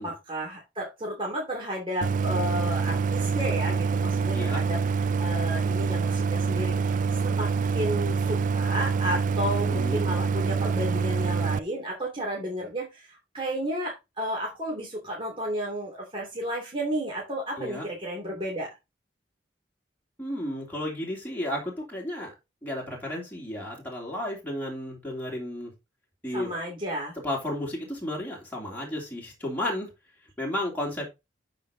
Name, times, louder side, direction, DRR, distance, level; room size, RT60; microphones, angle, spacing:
voice 1, 0.0-4.8 5.2-18.8 26.3-27.2, equal, 30° right, -2 dB, 2.8 m, -32 dB
Idling, 2.0-11.6, right 5 dB, 45° right, 0.3 m, -26 dB
voice 2, 20.2-22.3 22.6-25.7 26.2-26.5 27.2-29.9 30.4-31.0, left 1 dB, 10° left, -2 dB, 3.1 m, -33 dB
12.0 x 5.2 x 2.8 m, 0.23 s
head